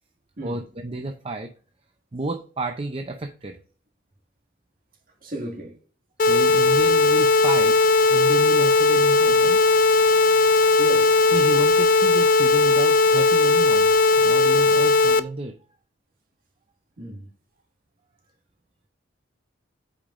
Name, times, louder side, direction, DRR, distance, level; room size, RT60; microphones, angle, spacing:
voice 1, 0.4-1.5 2.1-3.6 6.2-7.8 8.1-9.6 11.3-13.9 14.2-15.5, right 2 dB, 30° right, 0.5 m, -31 dB
voice 2, 5.2-5.8 10.8-11.3 17.0-17.3, equal, 50° right, 2.0 m, -35 dB
sound 1, 6.2-15.2, left 3 dB, 45° left, 0.4 m, -17 dB
8.7 x 5.1 x 2.5 m
head